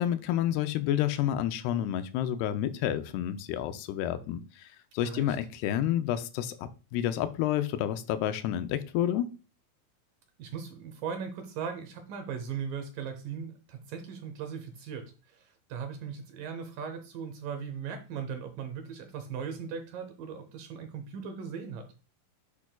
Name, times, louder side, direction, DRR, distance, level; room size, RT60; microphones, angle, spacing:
voice 1, 0.0-4.7 4.9-9.3, left 11 dB, 85° left, 10 dB, 2.6 m, -29 dB
voice 2, 5.0-5.4 10.4-21.9, right 7 dB, 75° right, 7 dB, 2.2 m, -38 dB
8.3 x 5.9 x 2.2 m, 0.34 s
omnidirectional pair, 4.6 m